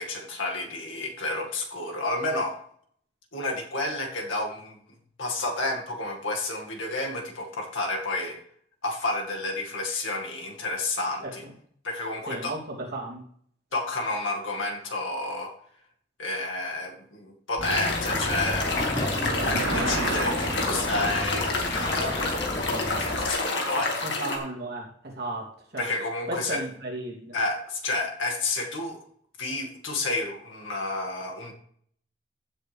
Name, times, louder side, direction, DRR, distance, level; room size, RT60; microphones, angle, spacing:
voice 1, 0.0-2.6 3.3-4.8 5.2-8.4 8.8-11.5 11.8-12.6 13.7-15.5 16.2-18.7 19.7-22.2 22.9-24.0 25.8-26.6 27.3-29.0 29.4-31.5, left 2 dB, 85° left, 1 dB, 2.2 m, -30 dB
voice 2, 12.3-13.2 24.0-25.9 26.3-27.4, right 2 dB, 55° right, -3 dB, 3.1 m, -35 dB
sound 1, 17.6-24.4, left 2 dB, 60° left, 2.2 m, -29 dB
sound 2, 17.6-23.3, left 1 dB, 20° left, 1.1 m, -32 dB
sound 3, 19.1-21.4, right 4 dB, 85° right, 0.7 m, -33 dB
15.5 x 7.5 x 3.5 m, 0.63 s
head